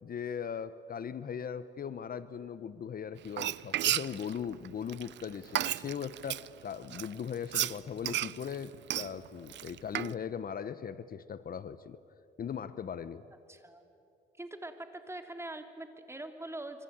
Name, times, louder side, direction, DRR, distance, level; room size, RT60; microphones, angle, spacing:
voice 1, 0.0-12.0 12.4-13.2, left 7 dB, 45° left, 14 dB, 0.9 m, -39 dB
Frying (food), 3.2-6.5 6.9-10.1, right 13 dB, 65° right, 0.6 m, -33 dB
voice 2, 13.5-13.9 14.4-16.8, right 1 dB, 15° right, 6 dB, 2.9 m, -43 dB
26.5 x 24.0 x 8.8 m, 2.6 s
cardioid pair, 90°, 20 cm